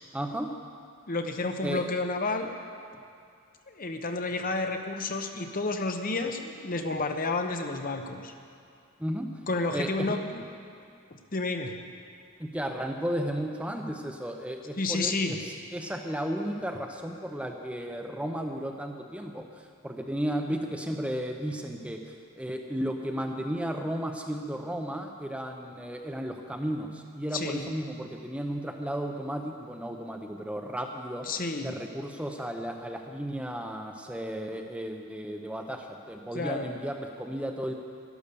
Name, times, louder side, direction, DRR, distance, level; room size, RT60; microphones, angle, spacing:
voice 1, 0.1-0.5 1.6-1.8 9.0-9.3 9.7-10.2 12.4-22.0 22.4-31.3 31.6-37.7, equal, 5° right, 3 dB, 0.7 m, -34 dB
voice 2, 1.1-2.5 3.7-8.3 9.5-10.4 11.1-11.7 14.8-15.4 27.3-27.7 31.2-31.7 36.3-36.6, left 3 dB, 40° left, 5 dB, 0.8 m, -30 dB
12.0 x 11.5 x 6.9 m, 2.3 s
head